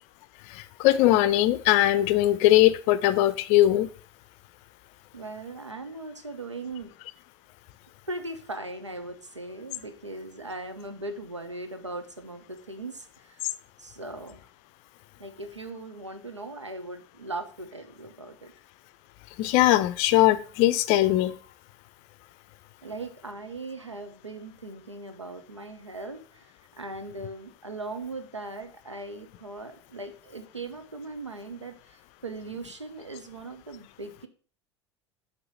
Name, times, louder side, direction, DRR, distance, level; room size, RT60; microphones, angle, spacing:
voice 1, 0.5-3.9 19.4-21.4, left 14 dB, 45° left, 14 dB, 0.5 m, -20 dB
voice 2, 5.1-6.9 8.1-13.5 13.8-14.4 15.2-18.5 22.8-34.3, right 2 dB, 85° right, 7 dB, 0.7 m, -39 dB
7.7 x 2.9 x 5.2 m, 0.40 s
figure-of-eight pair, 75°, 15 cm